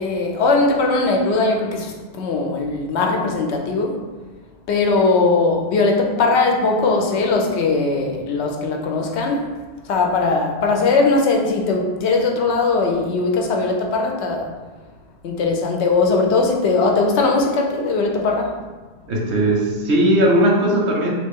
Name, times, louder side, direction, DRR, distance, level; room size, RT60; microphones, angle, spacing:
voice 1, 0.0-4.0 4.7-9.5 9.8-14.5 15.2-18.5, left 3 dB, 85° left, 2 dB, 0.9 m, -19 dB
voice 2, 19.1-21.1, right 1 dB, 90° right, -2 dB, 0.9 m, -17 dB
3.0 x 2.5 x 3.6 m, 1.3 s
omnidirectional pair, 1.1 m